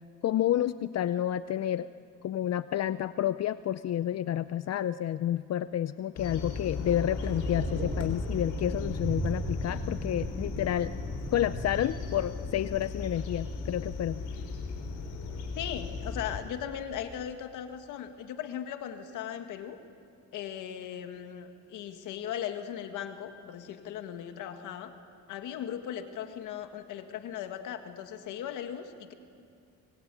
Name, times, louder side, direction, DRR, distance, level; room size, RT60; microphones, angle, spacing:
voice 1, 0.2-1.9 2.2-10.9 11.3-14.2, left 11 dB, 55° left, 14 dB, 0.6 m, -30 dB
sound 1, 6.2-16.4, left 4 dB, 75° left, 4.2 m, -36 dB
sound 2, 7.2-12.2, right 2 dB, 35° right, 3.4 m, -38 dB
voice 2, 15.6-19.8 20.3-24.9 25.3-29.1, left 9 dB, 90° left, 7 dB, 1.9 m, -38 dB
25.0 x 20.5 x 9.2 m, 2.3 s
cardioid pair, 90°, 30 cm